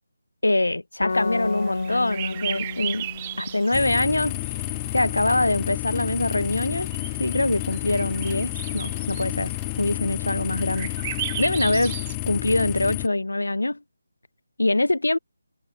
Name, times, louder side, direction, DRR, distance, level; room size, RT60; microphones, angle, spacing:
voice 1, 0.4-3.1 3.4-4.3 4.9-6.9 7.2-9.5 9.8-10.9 11.4-12.0 12.3-13.8 14.6-15.2, left 2 dB, 80° left, 0.4 m, -24 dB
sound 1, 1.0-4.5, left 3 dB, 60° left, 2.2 m, -32 dB
sound 2, 1.1-12.2, right 13 dB, 25° right, 1.0 m, -37 dB
sound 3, 3.7-13.1, left 24 dB, 15° left, 1.4 m, -30 dB
figure-of-eight pair, 155°, 0 cm